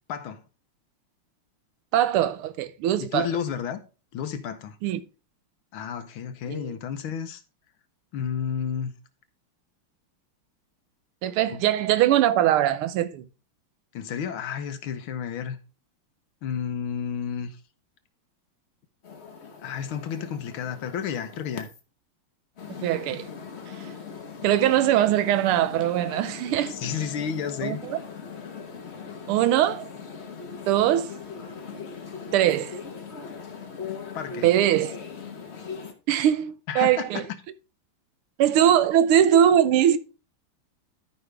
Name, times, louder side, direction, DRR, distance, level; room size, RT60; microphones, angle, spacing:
voice 1, 0.1-0.4 3.0-3.8 4.1-4.8 5.7-7.4 8.1-8.9 11.5-11.6 13.9-15.6 16.4-17.6 19.6-21.7 26.7-27.8 34.1-34.5 36.7-37.3, left 7 dB, 75° left, 1.7 m, -31 dB
voice 2, 1.9-3.3 4.8-5.0 6.5-6.7 11.2-13.2 22.8-23.3 23.7-23.8 24.4-26.8 27.6-28.0 29.3-29.9 30.7-31.1 32.3-32.8 34.4-35.0 36.1-37.2 38.4-40.0, right 11 dB, 80° right, 1.6 m, -21 dB
sound 1, 19.0-21.8 22.6-35.9, left 5 dB, 40° left, 1.0 m, -40 dB
13.0 x 5.3 x 3.3 m
omnidirectional pair, 2.4 m